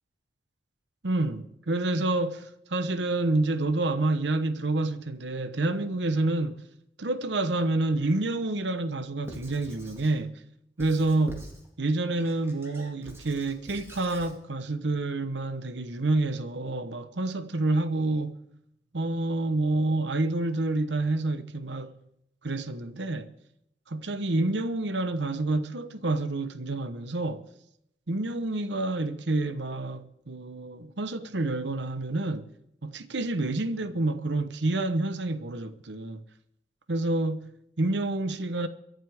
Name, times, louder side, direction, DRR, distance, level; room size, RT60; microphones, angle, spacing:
voice 1, 1.0-6.7 7.0-10.4 10.8-11.4 11.8-18.4 18.9-22.0 22.4-23.3 23.9-27.5 28.1-32.5 32.8-36.2 36.9-38.7, right 2 dB, 75° right, 1.0 m, -28 dB
Squeak / Writing, 9.2-10.2 10.8-11.7 12.2-14.4, equal, 15° right, 2.1 m, -45 dB
23.5 x 11.0 x 3.6 m
head